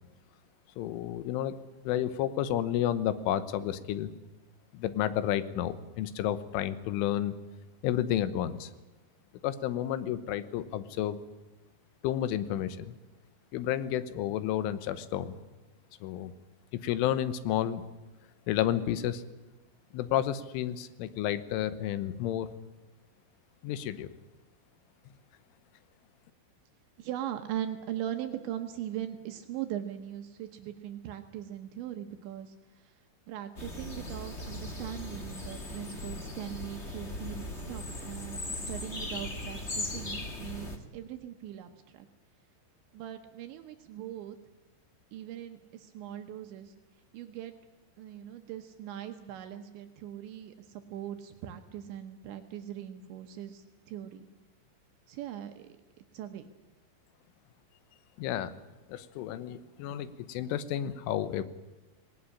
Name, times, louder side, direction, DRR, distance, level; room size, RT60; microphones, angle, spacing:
voice 1, 0.8-4.1 4.7-7.4 7.8-8.7 9.4-11.2 12.0-12.9 13.5-15.4 16.0-16.3 16.8-17.8 18.5-19.2 19.9-22.5 23.6-24.1 58.2-58.6 58.9-61.4, left 11 dB, 90° left, 14 dB, 3.6 m, -31 dB
voice 2, 27.0-33.0 33.3-42.1 42.9-44.4 45.1-46.7 47.1-47.5 48.0-54.3 55.1-55.7 56.1-56.5, right 11 dB, 75° right, 6 dB, 3.2 m, -40 dB
sound 1, 33.5-40.8, left 1 dB, 60° left, 0.7 m, -38 dB
19.0 x 19.0 x 9.9 m, 1.1 s
omnidirectional pair, 5.5 m